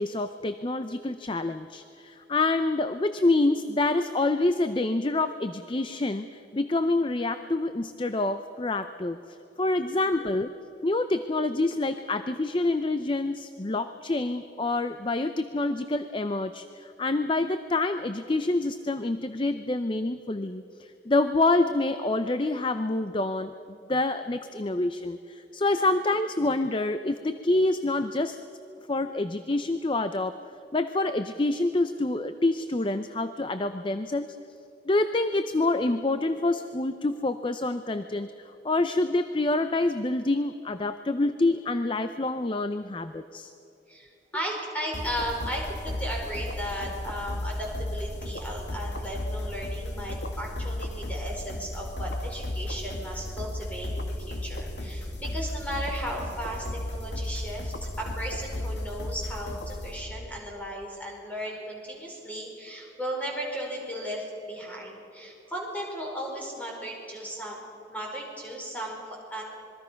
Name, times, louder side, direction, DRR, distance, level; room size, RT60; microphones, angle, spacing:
voice 1, 0.0-9.2 9.6-10.5 10.8-23.5 23.9-28.4 28.9-30.4 30.7-34.4 34.9-43.5, left 2 dB, 30° left, 10 dB, 0.5 m, -27 dB
voice 2, 44.3-67.6 67.9-69.4, equal, 10° left, -2 dB, 4.9 m, -36 dB
sound 1, 44.9-60.4, left 1 dB, 75° left, 2.0 m, -34 dB
26.5 x 22.5 x 5.8 m, 2.9 s
head